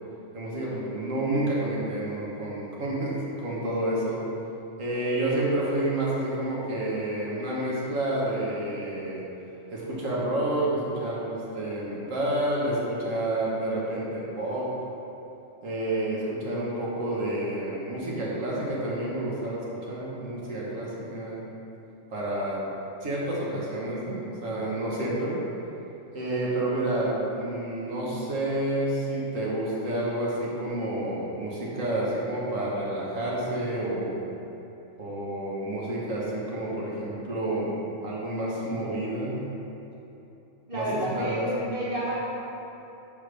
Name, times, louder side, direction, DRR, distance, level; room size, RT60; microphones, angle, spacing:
voice 1, 0.3-4.2 4.8-9.2 9.7-14.7 15.6-21.4 22.1-22.7 23.0-25.4 26.1-34.2 35.0-37.8 38.0-39.4 40.7-41.5, right 1 dB, 90° right, -5 dB, 1.6 m, -29 dB
voice 2, 40.7-42.1, equal, 50° right, -6 dB, 1.0 m, -30 dB
10.5 x 3.6 x 3.4 m, 2.9 s
omnidirectional pair, 1.3 m